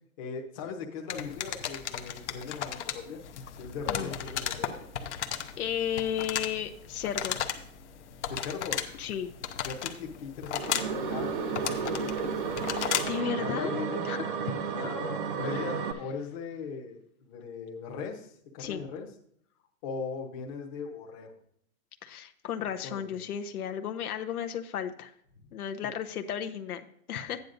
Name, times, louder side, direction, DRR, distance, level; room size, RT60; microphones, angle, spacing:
voice 1, 0.2-3.2 3.6-5.3 8.3-8.8 9.6-12.7 13.2-14.1 14.7-14.9 15.4-19.1 19.8-21.3 22.6-23.0, left 5 dB, 25° left, 1 dB, 1.0 m, -39 dB
sound 1, 1.1-13.2, left 9 dB, 50° left, 0.8 m, -35 dB
voice 2, 5.6-7.4 9.0-9.3 13.1-13.8 14.0-14.4 14.7-15.7 18.6-18.9 22.0-25.1 25.5-27.4, left 9 dB, 90° left, 8 dB, 1.0 m, -34 dB
sound 2, 10.5-15.9, right 6 dB, 35° right, 0.6 m, -32 dB
11.5 x 9.4 x 2.6 m, 0.68 s
hypercardioid pair, 170°, 43 cm